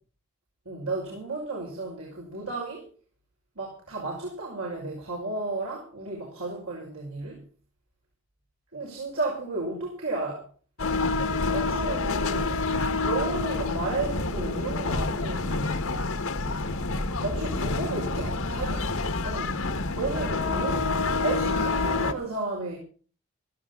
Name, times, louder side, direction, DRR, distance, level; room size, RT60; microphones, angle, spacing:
voice 1, 0.6-2.9 3.6-7.4 8.7-10.5 11.5-12.6 13.0-15.7 17.2-18.9 19.2-19.6 19.9-20.9 21.2-22.8, right 3 dB, 90° right, 6.0 m, -33 dB
sound 1, 10.8-22.1, left 3 dB, 80° left, 1.8 m, -28 dB
17.5 x 14.5 x 4.0 m
head